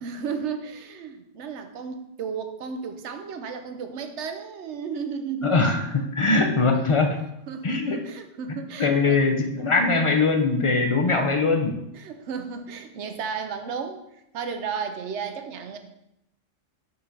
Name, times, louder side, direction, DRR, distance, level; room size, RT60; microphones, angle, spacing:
voice 1, 0.0-5.7 6.0-6.1 7.5-9.2 11.9-15.8, right 6 dB, 75° right, 7 dB, 1.0 m, -34 dB
voice 2, 5.4-7.2 7.6-8.0 8.5-11.8, left 3 dB, 35° left, 4 dB, 0.6 m, -22 dB
5.4 x 4.2 x 5.1 m, 0.83 s
omnidirectional pair, 1.2 m